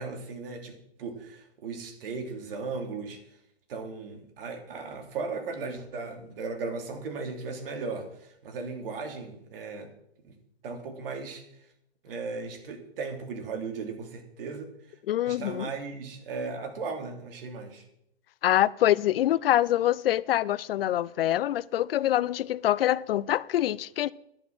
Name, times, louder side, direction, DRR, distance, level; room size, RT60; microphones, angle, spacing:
voice 1, 0.0-3.2 3.7-9.9 10.2-10.3 10.6-11.4 12.0-14.7 15.3-17.8, right 4 dB, 60° right, 2.9 m, -36 dB
voice 2, 15.1-15.7 18.4-24.1, left 13 dB, 65° left, 0.5 m, -25 dB
10.5 x 10.0 x 6.1 m
hypercardioid pair, 135°, 32 cm